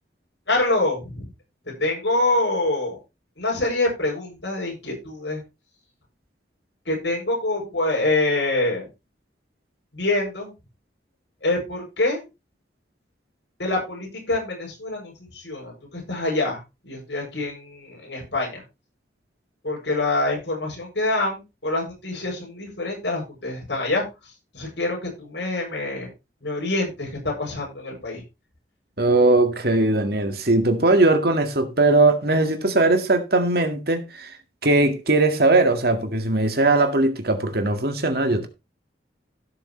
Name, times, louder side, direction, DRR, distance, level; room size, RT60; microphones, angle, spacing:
voice 1, 0.5-1.3 1.8-3.0 3.4-5.4 6.9-8.9 9.9-10.5 11.4-12.2 13.6-18.6 19.6-26.1 26.4-28.2, left 2 dB, 75° left, 7.5 m, -26 dB
voice 2, 29.0-34.4 34.6-38.5, right 2 dB, 55° right, 2.0 m, -19 dB
16.5 x 7.0 x 3.3 m
head